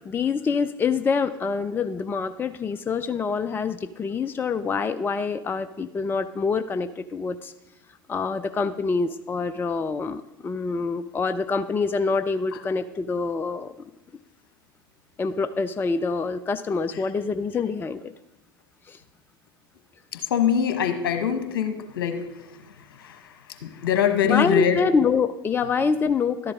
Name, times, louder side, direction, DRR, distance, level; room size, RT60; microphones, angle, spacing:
voice 1, 0.0-7.5 8.1-13.7 15.2-18.1 18.9-19.0 24.2-26.5, left 5 dB, 15° left, 12 dB, 0.4 m, -26 dB
voice 2, 20.1-22.3 23.0-23.2 23.6-24.8, left 8 dB, 65° left, 7 dB, 1.2 m, -23 dB
12.5 x 10.5 x 3.6 m, 0.97 s
figure-of-eight pair, 80°, 12 cm